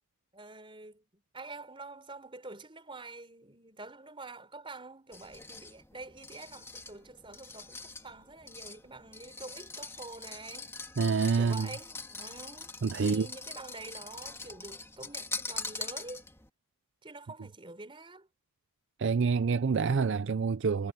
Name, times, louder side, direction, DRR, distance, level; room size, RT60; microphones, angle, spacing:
voice 1, 0.3-10.7 11.4-12.7 13.0-16.2 17.0-18.3, right 3 dB, 25° right, 4.1 m, -47 dB
sound 1, 5.1-16.5, left 3 dB, 10° left, 2.3 m, -43 dB
voice 2, 11.0-11.7 12.8-13.3 19.0-20.9, right 5 dB, 55° right, 0.4 m, -27 dB
head